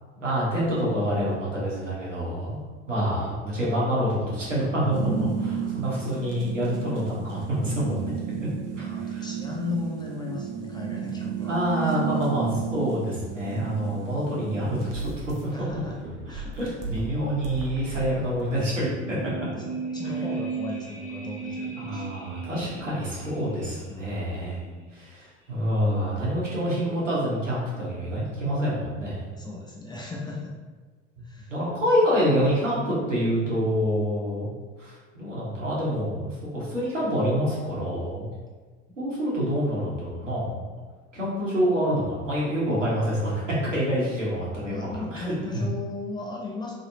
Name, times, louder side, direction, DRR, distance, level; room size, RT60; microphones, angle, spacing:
voice 1, 0.2-2.6 2.9-8.3 8.8-9.2 11.4-15.0 16.3-19.2 19.5-19.6 21.8-24.6 24.9-29.2 31.5-34.5 34.8-38.3 39.0-40.6 41.1-45.2 45.5-45.6, equal, 90° right, -7 dB, 1.2 m, -27 dB
sound 1, 4.9-18.5, right 8 dB, 55° right, 0.7 m, -34 dB
voice 2, 5.0-6.0 8.7-11.6 13.6-14.4 15.5-16.0 16.3-16.7 19.1-22.2 23.9-25.0 29.3-30.6 31.2-31.5 44.7-46.7, left 3 dB, 10° left, -2 dB, 0.5 m, -37 dB
sound 2, 18.6-23.9 24.2-24.3, right 5 dB, 35° right, 1.3 m, -35 dB
3.3 x 2.8 x 2.7 m, 1.4 s
figure-of-eight pair, 75°, 36 cm